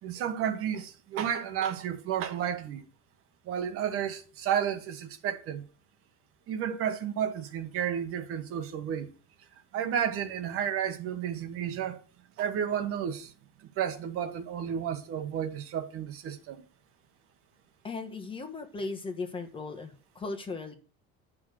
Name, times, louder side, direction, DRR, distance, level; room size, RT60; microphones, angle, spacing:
voice 1, 0.0-2.8 3.5-5.6 6.5-9.1 9.7-12.0 12.4-13.3 13.8-16.6, right 9 dB, 50° right, 1.5 m, -32 dB
voice 2, 17.8-20.7, left 3 dB, 20° left, 1.4 m, -37 dB
11.5 x 6.3 x 6.6 m
cardioid pair, 160°, 29 cm